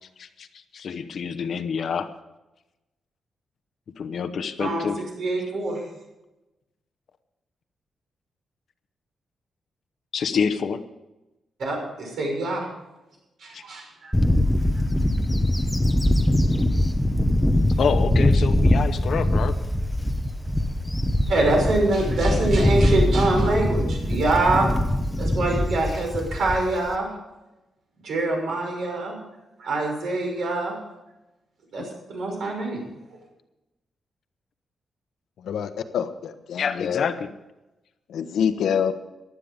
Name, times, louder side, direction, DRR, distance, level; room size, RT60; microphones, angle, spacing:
voice 1, 0.7-2.1 4.0-5.0 10.1-10.8 13.5-13.6 17.8-19.6 36.6-37.3, left 6 dB, 50° left, 10 dB, 0.9 m, -27 dB
voice 2, 5.2-5.8 11.6-12.6 13.4-14.1 21.3-24.7 25.2-27.1 28.0-29.2 29.6-30.8 31.7-32.8, right 2 dB, 65° right, 1 dB, 6.0 m, -24 dB
Bird / Wind, 14.1-26.9, left 1 dB, 5° left, 0.8 m, -22 dB
voice 3, 35.4-37.0 38.1-38.9, left 8 dB, 80° left, 8 dB, 1.1 m, -26 dB
15.5 x 12.0 x 5.3 m, 0.99 s
wide cardioid pair, 180°, 0 cm